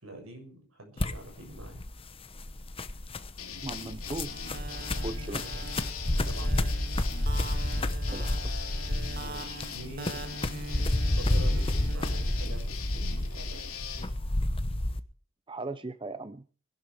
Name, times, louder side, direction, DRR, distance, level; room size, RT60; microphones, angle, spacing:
voice 1, 0.0-1.8 5.3-5.6 6.2-6.7 9.2-10.2 11.0-13.6, right 1 dB, 75° right, 4 dB, 6.9 m, -45 dB
sound 1, 1.0-15.0, left 1 dB, 25° left, 1.0 m, -30 dB
sound 2, 3.4-14.1, left 7 dB, 80° left, 3.4 m, -42 dB
voice 2, 3.6-4.3 4.7-5.4 8.1-8.5 15.5-16.4, right 2 dB, 25° right, 12 dB, 0.7 m, -38 dB
sound 3, 4.3-12.4, right 2 dB, 45° right, 2.1 m, -43 dB
21.5 x 12.0 x 4.8 m, 0.40 s
head